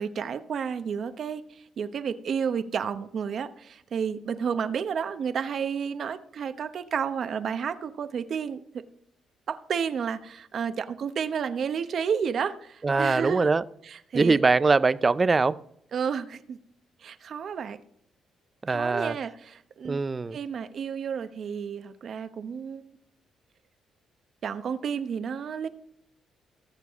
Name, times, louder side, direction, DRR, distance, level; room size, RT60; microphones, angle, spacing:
voice 1, 0.0-8.8 9.5-13.5 13.8-14.4 15.9-16.6 17.0-17.8 18.7-20.0 20.3-22.8 24.4-25.7, right 7 dB, 55° right, 0.9 m, -31 dB
voice 2, 12.8-13.6 14.1-15.6 18.6-19.2 19.8-20.4, right 4 dB, 30° right, 0.5 m, -22 dB
18.0 x 6.9 x 3.6 m
cardioid pair, 90°, 0 cm